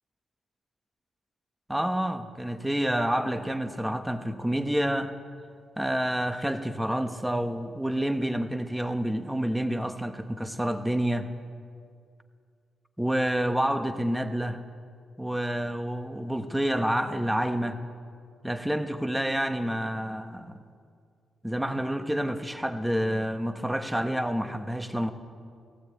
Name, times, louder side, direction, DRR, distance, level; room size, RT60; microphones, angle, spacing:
voice 1, 1.7-5.1 5.8-11.3 13.0-14.6 15.2-17.8 18.4-20.6 21.4-25.1, equal, 5° right, 1.0 m, -28 dB
18.5 x 17.0 x 8.5 m
wide cardioid pair, 145°, 0 cm